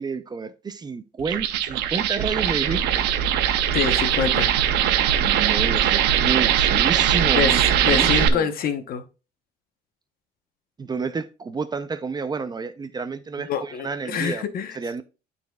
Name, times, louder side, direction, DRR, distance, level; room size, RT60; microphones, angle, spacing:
voice 1, 0.0-3.1 5.2-8.5 10.8-14.4 14.7-15.0, right 5 dB, 25° right, 0.5 m, -30 dB
sound 1, 1.2-8.3, right 10 dB, 90° right, 0.7 m, -21 dB
voice 2, 3.7-4.5 7.3-9.0 13.5-14.8, left 7 dB, 60° left, 0.9 m, -26 dB
12.0 x 4.1 x 2.3 m
cardioid pair, 110°, 17 cm